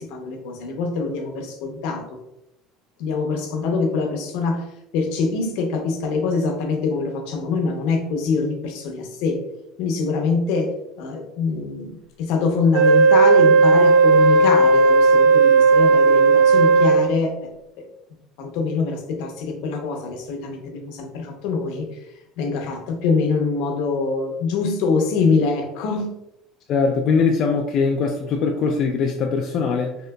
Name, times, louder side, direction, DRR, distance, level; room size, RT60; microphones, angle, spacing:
voice 1, 0.0-2.1 3.0-4.7 4.9-9.4 9.8-17.5 17.8-17.9 18.4-21.9 22.4-26.2, left 4 dB, 75° left, 3 dB, 0.7 m, -24 dB
Wind instrument woodwind instrument, 12.7-17.1, right 4 dB, 60° right, 0.5 m, -14 dB
voice 2, 26.7-30.0, left 5 dB, 45° left, 1 dB, 0.3 m, -21 dB
3.7 x 2.7 x 2.2 m, 0.83 s
cardioid pair, 140°, 0 cm